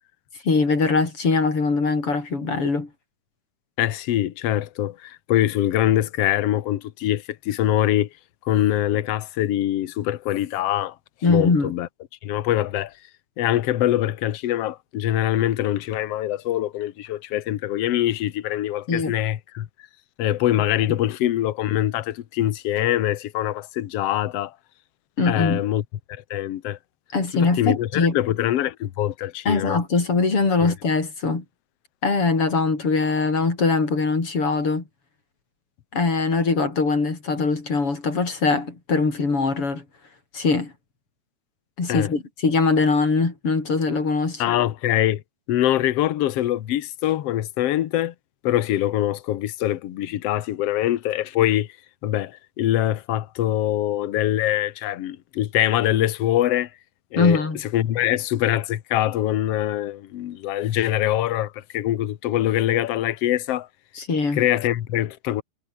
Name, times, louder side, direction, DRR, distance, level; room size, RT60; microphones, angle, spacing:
voice 1, 0.4-2.9 11.2-11.7 18.9-19.1 25.2-25.6 27.1-28.1 29.5-31.4 32.0-34.8 35.9-39.8 40.3-40.7 41.8-44.4 57.2-57.6 64.0-64.4, left 4 dB, 40° left, 5.8 m, -22 dB
voice 2, 3.8-8.1 8.5-11.0 11.3-11.9 12.2-12.9 13.4-19.7 20.2-24.5 25.3-25.8 26.1-26.8 27.3-29.8 30.6-30.7 41.9-42.1 44.4-45.2 45.5-48.1 48.4-51.7 52.0-56.7 57.1-57.4 57.7-63.7 64.3-65.4, left 13 dB, 60° left, 1.8 m, -23 dB
omnidirectional pair, 3.8 m